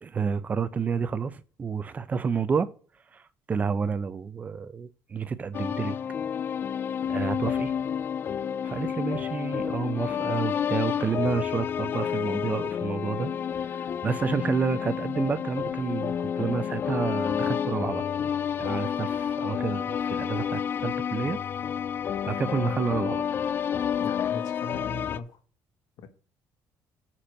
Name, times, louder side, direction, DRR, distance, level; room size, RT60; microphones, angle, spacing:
voice 1, 0.0-2.7 3.1-3.2 3.5-6.0 7.1-7.7 8.6-13.3 13.6-18.0 18.6-21.4 22.3-23.2, right 5 dB, 20° right, 0.5 m, -30 dB
sound 1, 5.5-25.2, left 8 dB, 30° left, 0.3 m, -30 dB
voice 2, 24.0-25.4 26.0-26.1, left 4 dB, 65° left, 1.7 m, -38 dB
9.8 x 4.5 x 6.3 m
cardioid pair, 175°, 7 cm